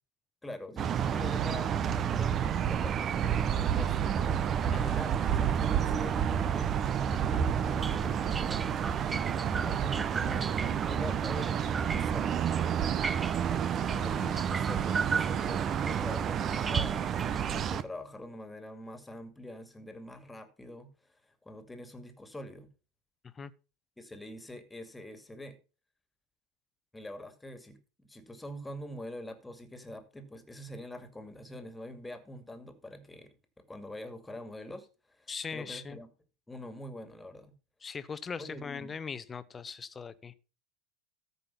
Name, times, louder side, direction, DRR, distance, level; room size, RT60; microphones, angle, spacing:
voice 1, 0.4-4.4 4.6-6.8 7.5-12.5 14.0-20.9 21.4-22.7 24.0-25.6 26.9-36.1 36.5-37.5 38.4-38.9, left 1 dB, 10° left, 2.4 m, -45 dB
sound 1, 0.8-17.8, right 8 dB, 40° right, 0.9 m, -30 dB
voice 2, 7.1-7.4 13.7-14.4 23.2-23.5 35.3-36.0 37.8-40.3, left 5 dB, 25° left, 1.0 m, -41 dB
sound 2, 7.8-17.7, right 5 dB, 20° right, 0.5 m, -38 dB
14.0 x 5.5 x 5.7 m
hypercardioid pair, 85°, 0 cm